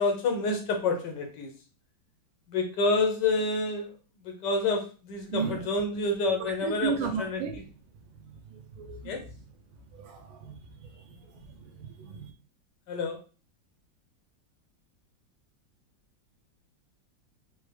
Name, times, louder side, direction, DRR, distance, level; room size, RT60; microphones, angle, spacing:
voice 1, 0.0-1.5 2.5-3.9 4.2-7.4 9.0-9.2 12.9-13.2, left 3 dB, 70° left, 4 dB, 1.3 m, -28 dB
voice 2, 5.3-5.6 6.4-7.6 8.5-9.1 9.9-10.6 11.0-11.1 11.6-12.3, right 6 dB, 85° right, 3 dB, 1.4 m, -34 dB
4.1 x 2.0 x 3.2 m, 0.35 s
omnidirectional pair, 2.1 m